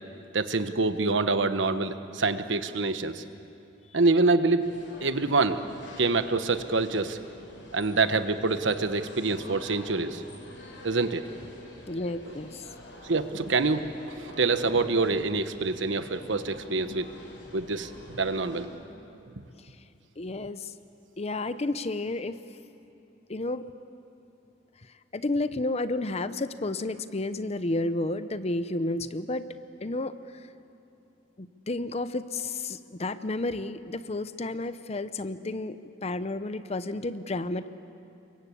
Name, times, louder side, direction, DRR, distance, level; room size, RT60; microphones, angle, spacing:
voice 1, 0.3-3.2 3.9-4.6 5.0-5.6 6.0-7.2 7.7-10.2 10.8-11.2 13.0-17.1 17.5-18.7, right 3 dB, 75° right, 10 dB, 1.2 m, -26 dB
sound 1, 4.6-18.6, left 1 dB, 75° left, 7.2 m, -47 dB
voice 2, 11.9-12.7 20.2-20.7 21.2-22.4 23.3-23.7 25.1-29.5 29.8-30.1 31.4-37.7, left 2 dB, 35° left, 12 dB, 0.7 m, -31 dB
28.5 x 23.5 x 8.5 m, 2.7 s
head